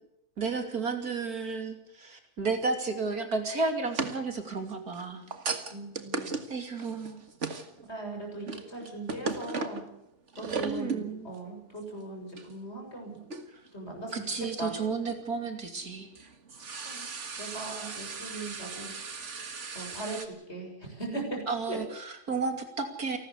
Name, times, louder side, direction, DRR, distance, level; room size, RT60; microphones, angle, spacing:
voice 1, 0.4-5.2 6.5-7.2 10.6-11.3 14.1-16.1 21.5-23.2, right 4 dB, 65° right, 5 dB, 3.3 m, -32 dB
sound 1, 3.8-7.8 8.2-9.9 10.3-11.1 11.3-11.4 12.4-12.5 13.3-13.7 14.1-14.2 15.8-20.3, right 4 dB, 50° right, 2.0 m, -37 dB
voice 2, 5.7-6.3 7.9-9.8 10.4-13.2 13.7-14.1 14.6-14.7 16.8-18.9 19.7-21.4 21.7-21.8, right 2 dB, 40° left, 2 dB, 7.3 m, -39 dB
28.5 x 13.0 x 8.2 m, 0.82 s
omnidirectional pair, 1.7 m